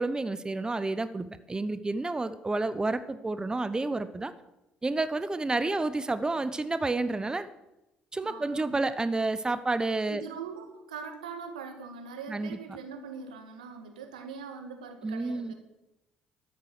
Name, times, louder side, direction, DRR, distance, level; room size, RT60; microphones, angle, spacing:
voice 1, 0.0-4.3 4.8-7.5 8.1-10.2 12.3-12.6 15.0-15.5, right 2 dB, 20° right, 13 dB, 0.9 m, -30 dB
voice 2, 8.2-8.8 10.1-15.5, right 6 dB, 85° right, 6 dB, 1.7 m, -42 dB
12.5 x 9.3 x 6.7 m, 0.94 s
hypercardioid pair, 55°, 4 cm